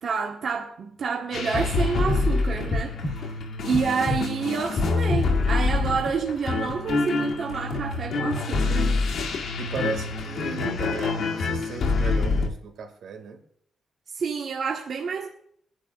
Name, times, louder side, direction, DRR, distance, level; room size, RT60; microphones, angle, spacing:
voice 1, 0.0-3.3 3.6-9.0 14.1-15.3, right 5 dB, 55° right, 1.4 m, -28 dB
sound 1, 1.3-12.5, left 3 dB, 70° left, 2.3 m, -26 dB
voice 2, 9.6-13.4, right 5 dB, 80° right, 2.2 m, -36 dB
22.5 x 10.5 x 2.5 m
wide cardioid pair, 150°, 0 cm